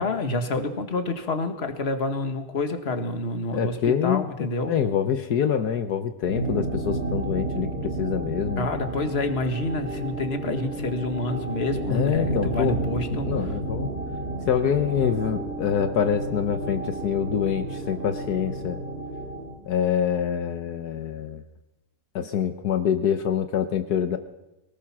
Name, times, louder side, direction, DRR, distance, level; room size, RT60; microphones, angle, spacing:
voice 1, 0.0-4.7 8.6-13.3, left 2 dB, 40° left, 7 dB, 1.9 m, -28 dB
voice 2, 3.5-4.2 4.7-8.7 11.9-12.8 13.1-13.9 14.5-18.8 19.7-21.4 22.1-24.2, left 8 dB, 75° left, 8 dB, 1.5 m, -25 dB
sound 1, 6.2-19.6, right 2 dB, 85° right, 5.2 m, -31 dB
23.5 x 18.5 x 6.0 m, 0.94 s
omnidirectional pair, 1.7 m